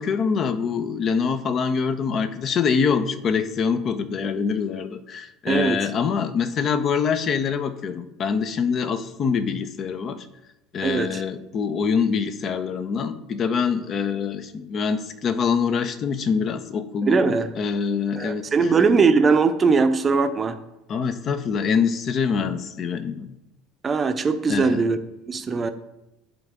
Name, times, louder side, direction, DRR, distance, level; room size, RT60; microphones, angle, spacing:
voice 1, 0.0-10.3 10.7-18.7 20.9-23.4 24.5-24.8, left 6 dB, 40° left, 0.6 m, -25 dB
voice 2, 5.5-5.8 10.8-11.2 17.0-17.5 18.2-20.6 23.8-25.0 25.3-25.7, right 4 dB, 30° right, 0.6 m, -20 dB
10.5 x 4.1 x 3.6 m
figure-of-eight pair, 65°, 0 cm